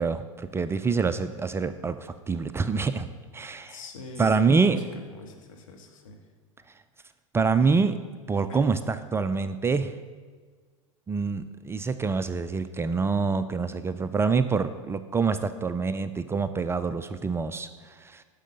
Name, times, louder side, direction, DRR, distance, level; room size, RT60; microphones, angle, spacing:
voice 1, 0.0-3.1 3.3-3.8 4.2-4.8 7.3-8.0 8.3-9.9 11.1-18.2, right 4 dB, 15° right, 11 dB, 0.4 m, -26 dB
voice 2, 3.7-6.2 8.5-8.6, left 4 dB, 70° left, 3 dB, 1.8 m, -42 dB
10.0 x 6.3 x 6.6 m, 1.5 s
hypercardioid pair, 95°, 17 cm